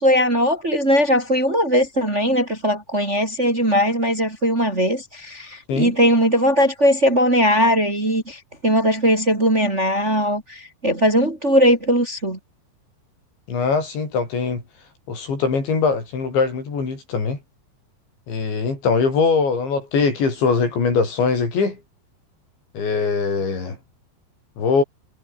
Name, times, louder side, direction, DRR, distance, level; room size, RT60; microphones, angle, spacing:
voice 1, 0.0-12.4, equal, 20° right, 2.8 m, -19 dB
voice 2, 13.5-14.6 15.1-17.4 18.3-21.8 22.7-23.8 24.6-24.8, left 5 dB, 90° left, 10.0 m, -21 dB
omnidirectional pair, 5.0 m